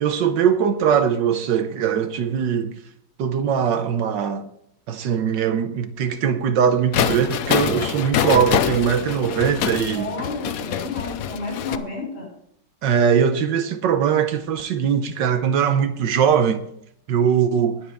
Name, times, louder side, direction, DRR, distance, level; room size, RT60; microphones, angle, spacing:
voice 1, 0.0-2.8 3.2-4.5 4.9-10.1 12.8-16.6 17.1-17.8, right 7 dB, 75° right, 1.5 m, -21 dB
sound 1, 6.9-11.8, left 9 dB, 65° left, 1.0 m, -25 dB
voice 2, 9.9-12.3, left 3 dB, 30° left, 6.2 m, -31 dB
20.0 x 7.8 x 3.5 m
omnidirectional pair, 2.0 m